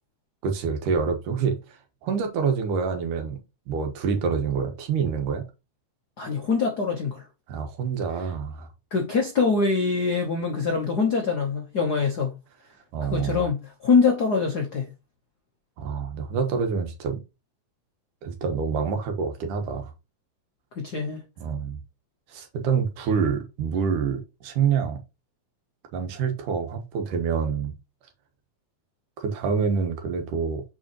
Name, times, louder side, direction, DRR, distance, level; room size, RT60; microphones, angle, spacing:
voice 1, 0.4-1.8 2.0-3.4 3.7-5.5 7.5-8.7 12.9-13.4 15.8-17.2 18.2-19.9 21.4-21.8 22.3-25.0 25.9-27.7 29.2-30.6, right 6 dB, 90° right, 2.8 m, -27 dB
voice 2, 6.2-7.2 8.9-12.3 13.1-14.9 20.7-21.2, left 4 dB, 90° left, 0.8 m, -24 dB
7.0 x 5.0 x 3.1 m
omnidirectional pair, 3.6 m